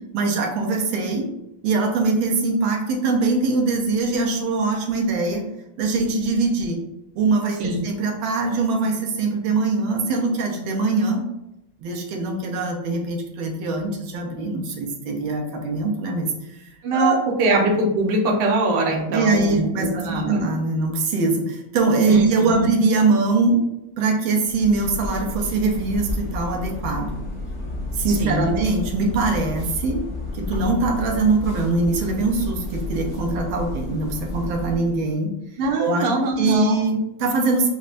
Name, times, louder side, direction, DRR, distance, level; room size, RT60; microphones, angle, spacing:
voice 1, 0.1-1.3 1.6-5.5 5.8-6.8 7.2-11.2 11.8-17.2 19.1-23.6 24.0-27.1 27.9-30.0 30.3-35.3 35.8-36.1 36.4-37.7, right 3 dB, 90° right, 1 dB, 1.5 m, -22 dB
voice 2, 16.8-20.3 22.1-22.7 28.1-28.5 35.6-36.8, right 2 dB, 65° right, 0 dB, 1.3 m, -22 dB
sound 1, 24.5-35.0, left 2 dB, 55° left, 0.8 m, -31 dB
5.4 x 2.1 x 2.5 m, 0.86 s
omnidirectional pair, 2.2 m